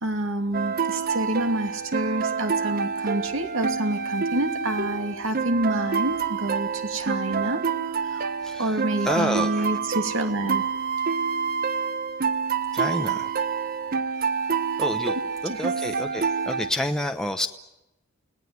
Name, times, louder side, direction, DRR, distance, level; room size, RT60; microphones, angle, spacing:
voice 1, 0.0-7.6 8.1-8.3 8.6-10.6 15.4-15.7, right 1 dB, 70° right, 6 dB, 2.8 m, -28 dB
sound 1, 0.5-16.7, right 6 dB, 45° right, 0.9 m, -27 dB
voice 2, 9.0-9.7 12.7-13.3 14.8-15.1 15.4-17.5, left 1 dB, 5° left, 4 dB, 0.9 m, -28 dB
29.5 x 19.0 x 9.5 m, 0.93 s
head